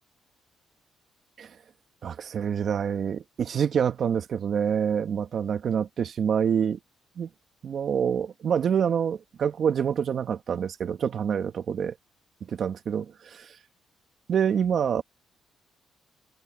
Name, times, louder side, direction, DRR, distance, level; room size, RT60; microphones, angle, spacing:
voice 1, 2.0-6.8 7.2-7.3 7.6-11.9 12.5-13.5 14.3-15.0, right 7 dB, 55° right, 1.9 m, -26 dB
cardioid pair, 90°, 0 cm